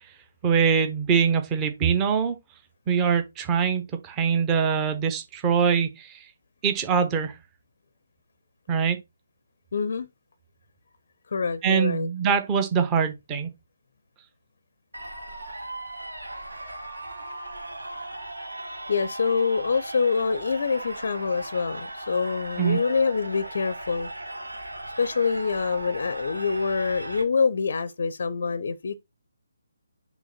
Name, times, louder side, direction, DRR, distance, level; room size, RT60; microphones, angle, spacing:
voice 1, 0.4-2.4 2.9-6.2 6.6-7.4 8.7-9.0 11.6-13.5 22.6-22.8, right 6 dB, 15° right, 1.0 m, -23 dB
voice 2, 9.7-10.1 11.3-12.1 18.9-24.1 25.0-29.0, left 5 dB, 50° left, 0.6 m, -25 dB
sound 1, 14.9-27.2, right 1 dB, 75° right, 1.7 m, -37 dB
6.2 x 3.3 x 5.9 m
figure-of-eight pair, 145°, 0 cm